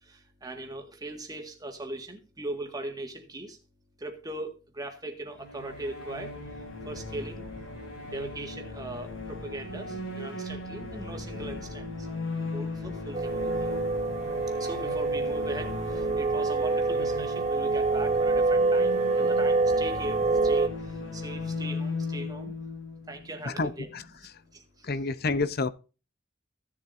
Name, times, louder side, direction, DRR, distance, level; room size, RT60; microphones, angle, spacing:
voice 1, 0.0-3.6 4.0-6.3 6.9-7.5 8.1-12.1 12.5-13.7 14.6-22.5 23.1-23.9 24.5-24.9, right 2 dB, 20° right, 1.8 m, -39 dB
sound 1, 5.4-24.0, left 2 dB, 85° left, 4.1 m, -37 dB
sound 2, 13.1-20.7, right 3 dB, 35° right, 0.7 m, -26 dB
voice 2, 23.5-24.3 24.8-25.7, left 3 dB, 50° left, 0.7 m, -29 dB
15.5 x 7.4 x 2.6 m
head